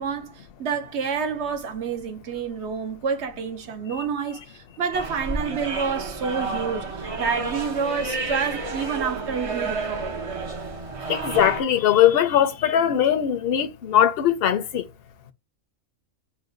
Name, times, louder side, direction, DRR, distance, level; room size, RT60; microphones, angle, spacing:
voice 1, 0.0-10.1, right 6 dB, 65° right, 0.9 m, -28 dB
sound 1, 4.9-11.6, right 3 dB, 35° right, 0.6 m, -31 dB
voice 2, 11.1-14.8, left 10 dB, 55° left, 0.8 m, -20 dB
4.0 x 2.2 x 3.8 m
omnidirectional pair, 1.3 m